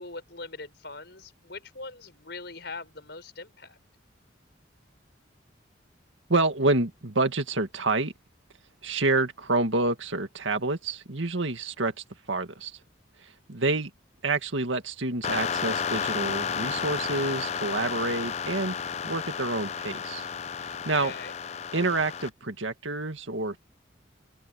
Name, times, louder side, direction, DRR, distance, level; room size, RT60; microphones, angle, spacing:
voice 1, 0.0-3.8 21.0-21.3, left 3 dB, 60° left, 6.6 m, -41 dB
voice 2, 6.3-8.1 8.8-11.9 12.3-12.8 13.5-13.9 14.2-18.8 19.0-20.3 20.6-21.1 21.7-23.6, right 2 dB, 80° right, 2.0 m, -28 dB
sound 1, 15.2-22.3, left 7 dB, 35° left, 0.4 m, -32 dB
head